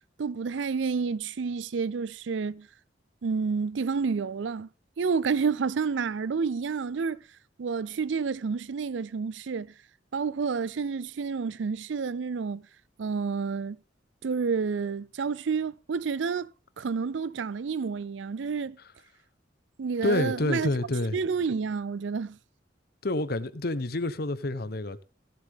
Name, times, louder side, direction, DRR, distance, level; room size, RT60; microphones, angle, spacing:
voice 1, 0.2-2.7 3.2-4.7 5.0-7.2 7.6-9.7 10.1-12.6 13.0-13.8 14.2-16.5 16.8-18.8 19.8-20.7 21.1-22.4, right 5 dB, 80° right, 0.5 m, -29 dB
voice 2, 20.0-21.2 23.0-25.0, left 2 dB, 55° left, 0.9 m, -28 dB
16.0 x 7.6 x 3.6 m
head